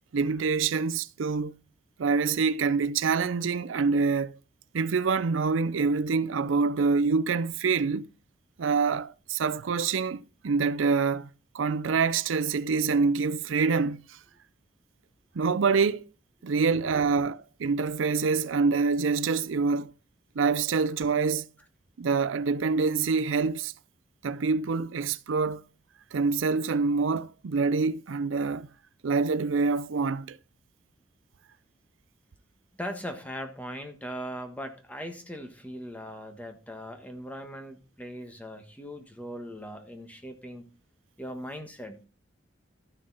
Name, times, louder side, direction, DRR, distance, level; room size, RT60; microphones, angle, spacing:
voice 1, 0.1-1.5 2.0-4.4 4.7-8.1 8.6-11.3 11.5-14.2 15.3-16.1 16.4-19.9 20.4-21.5 22.0-23.7 24.2-25.6 26.1-28.7 29.0-30.4, right 4 dB, 85° right, 0.5 m, -26 dB
voice 2, 32.8-40.7 41.2-42.1, equal, 10° left, 1.3 m, -39 dB
13.5 x 6.7 x 4.0 m
head